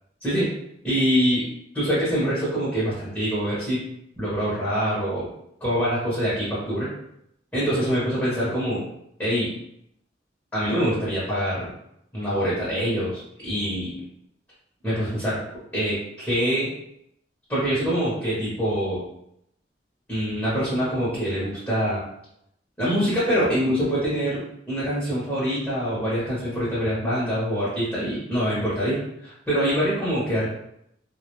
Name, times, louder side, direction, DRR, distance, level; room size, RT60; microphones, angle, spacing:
voice 1, 0.8-1.4 1.7-3.8 4.2-5.3 5.6-6.9 7.5-8.8 9.2-9.5 10.5-11.7 12.1-13.9 14.8-15.4 15.7-16.7 17.5-19.0 20.1-22.0 22.8-24.4 24.7-30.5, equal, 10° left, -10 dB, 0.8 m, -24 dB
2.1 x 2.1 x 2.9 m, 0.77 s
head